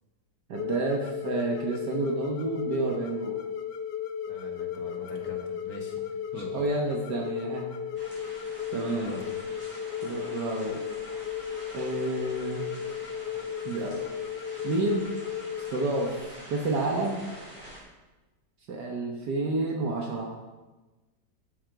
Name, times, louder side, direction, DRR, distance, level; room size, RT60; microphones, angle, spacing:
sound 1, 0.5-16.2, left 8 dB, 75° left, 1.5 m, -35 dB
voice 1, 0.5-3.4 6.3-7.7 8.7-9.1 10.0-10.8 11.7-12.7 13.7-14.1 14.6-15.1 15.7-17.2 18.7-20.3, right 2 dB, 70° right, 0 dB, 1.7 m, -30 dB
voice 2, 4.3-6.0 6.3-6.5 8.9-9.2, left 2 dB, 55° left, -1 dB, 2.3 m, -42 dB
sound 2, 7.9-17.8, equal, 20° right, 4.0 m, -46 dB
13.0 x 7.8 x 4.7 m, 1.2 s
omnidirectional pair, 1.9 m